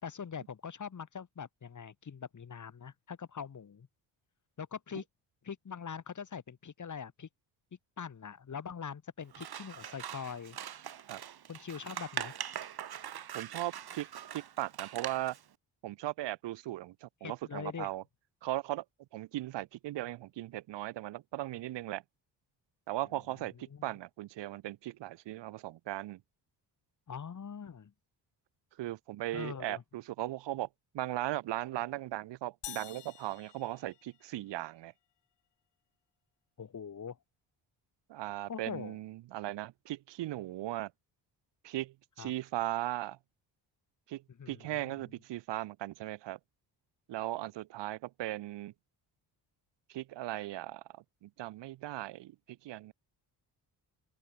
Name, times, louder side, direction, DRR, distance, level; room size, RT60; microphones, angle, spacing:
voice 1, 0.0-3.9 4.6-5.0 5.4-7.3 8.0-10.6 11.5-12.3 17.2-17.9 23.7-23.9 27.1-27.9 29.3-29.8 36.6-37.2 38.5-39.0 42.2-42.3 44.4-44.9, left 7 dB, 45° left, 5.4 m, -43 dB
Scissors, 9.3-15.4, right 10 dB, 60° right, 5.0 m, -42 dB
voice 2, 13.3-14.1 14.3-15.3 15.8-18.0 18.4-18.8 19.1-22.0 22.9-26.2 28.8-30.7 30.9-34.9 38.1-40.9 41.6-43.2 44.1-46.4 47.1-48.7 49.9-52.9, right 15 dB, 85° right, 1.8 m, -38 dB
sound 1, 32.6-34.6, left 14 dB, 80° left, 3.0 m, -48 dB
open air
cardioid pair, 95°, 42 cm